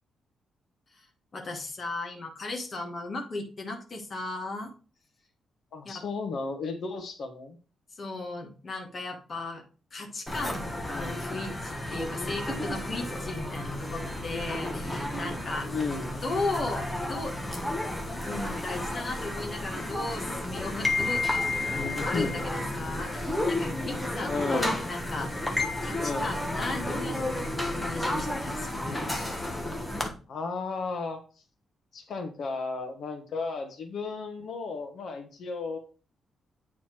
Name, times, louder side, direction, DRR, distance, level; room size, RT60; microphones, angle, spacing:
voice 1, 1.3-4.7 5.8-6.0 7.9-9.6 9.9-15.8 16.2-17.5 17.8-17.9 18.2-29.1, left 2 dB, 30° left, 1 dB, 1.5 m, -36 dB
voice 2, 5.7-7.6 10.9-11.2 15.6-16.1 21.6-22.3 24.3-24.8 26.0-26.3 30.3-31.2 31.9-35.8, left 4 dB, 50° left, 5 dB, 1.4 m, -34 dB
sound 1, 10.3-30.1, left 1 dB, 10° left, 1.1 m, -32 dB
9.0 x 4.2 x 4.5 m, 0.35 s
wide cardioid pair, 175°, 0 cm